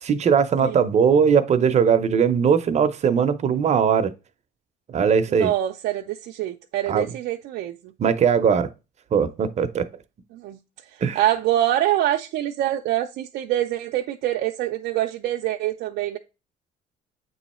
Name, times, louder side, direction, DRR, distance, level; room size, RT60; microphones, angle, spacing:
voice 1, 0.0-4.1 4.9-5.5 6.9-7.1 8.0-8.7 9.1-9.9 11.0-11.2, right 7 dB, 40° right, 0.7 m, -20 dB
voice 2, 5.3-7.9 10.3-10.6 10.9-16.2, right 13 dB, 75° right, 0.5 m, -25 dB
8.1 x 3.1 x 4.2 m
cardioid pair, 110°, 17 cm